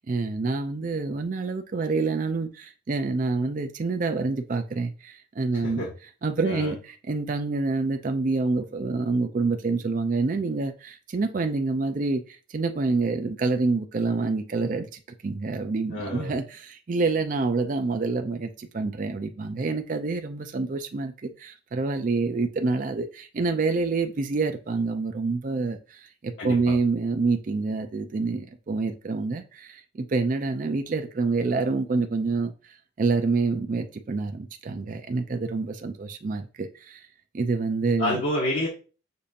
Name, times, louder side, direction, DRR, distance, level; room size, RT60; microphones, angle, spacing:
voice 1, 0.0-5.9 6.2-14.9 15.2-32.5 33.0-37.0 37.3-38.2, right 3 dB, 40° right, 0.4 m, -27 dB
voice 2, 5.5-5.9 6.4-6.7 15.9-16.3 26.4-26.7 38.0-38.7, left 1 dB, 65° left, 1.0 m, -28 dB
6.7 x 2.7 x 2.5 m
head